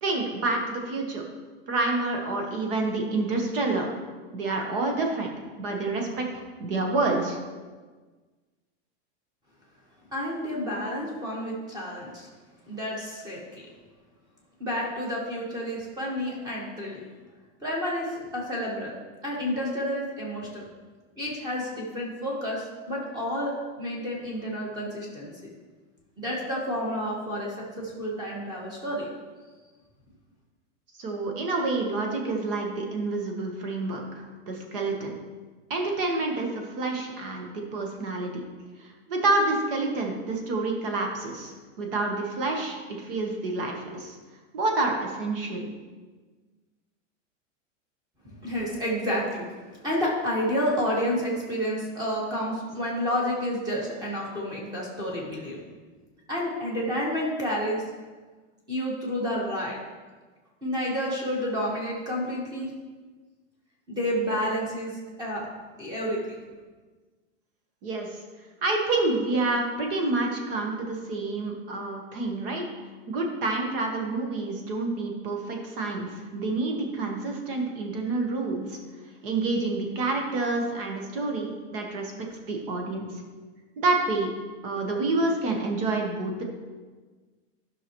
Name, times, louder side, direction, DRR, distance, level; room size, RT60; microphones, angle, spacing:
voice 1, 0.0-1.2 1.7-3.9 4.3-5.3 5.6-7.4 31.0-35.1 35.7-38.4 38.8-44.2 44.5-45.6 67.8-68.2 68.6-72.7 73.1-78.8 79.2-83.2 83.8-84.3 84.6-86.4, right 2 dB, 50° right, 2 dB, 1.3 m, -28 dB
voice 2, 10.1-12.3 12.7-13.6 14.6-17.0 17.6-18.9 19.2-20.6 21.2-25.3 26.2-29.1 48.2-49.4 49.8-55.6 56.3-57.8 58.7-59.8 60.6-62.7 63.9-64.9 65.2-65.4 65.8-66.2, equal, 10° right, -3 dB, 1.4 m, -30 dB
12.5 x 5.8 x 3.1 m, 1.4 s
supercardioid pair, 175°, 37 cm